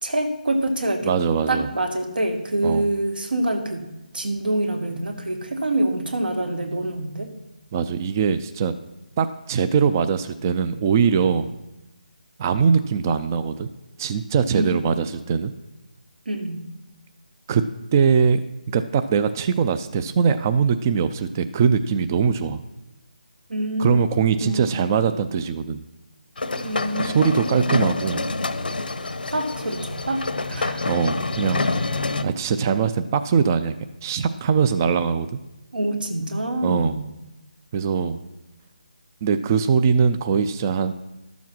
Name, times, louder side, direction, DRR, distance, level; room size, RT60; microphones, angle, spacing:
voice 1, 0.0-1.2 1.5-3.9 4.1-7.3 14.5-14.8 16.3-16.7 23.5-24.1 24.4-25.1 26.6-27.9 29.3-30.2 30.5-30.9 35.7-37.0, right 1 dB, 85° right, 5 dB, 2.2 m, -26 dB
voice 2, 1.1-1.7 2.6-2.8 7.7-8.7 9.2-11.5 12.4-13.7 14.0-15.5 17.5-17.6 17.9-18.4 18.7-22.6 23.8-25.8 27.0-28.3 30.9-31.6 32.2-33.8 34.0-35.3 36.6-37.0 37.7-38.2 39.2-40.9, right 6 dB, 20° right, 11 dB, 0.3 m, -21 dB
sound 1, 26.4-32.2, left 3 dB, 90° left, 1.0 m, -27 dB
12.5 x 7.1 x 6.0 m, 1.0 s
figure-of-eight pair, 165°, 5 cm